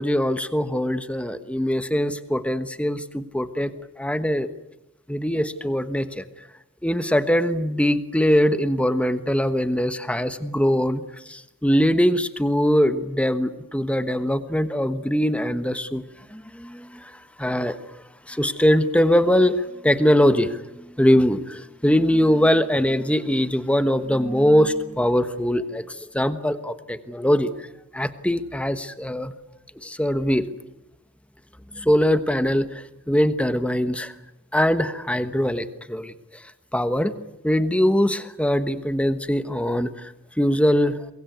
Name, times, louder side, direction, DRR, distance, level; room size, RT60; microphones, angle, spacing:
voice 1, 0.0-4.5 5.1-6.2 6.8-16.0 16.3-27.7 27.9-29.3 29.8-30.5 31.7-34.1 34.5-37.2 37.4-41.1, equal, 5° left, 11 dB, 1.2 m, -22 dB
24.0 x 22.0 x 9.4 m, 0.89 s
head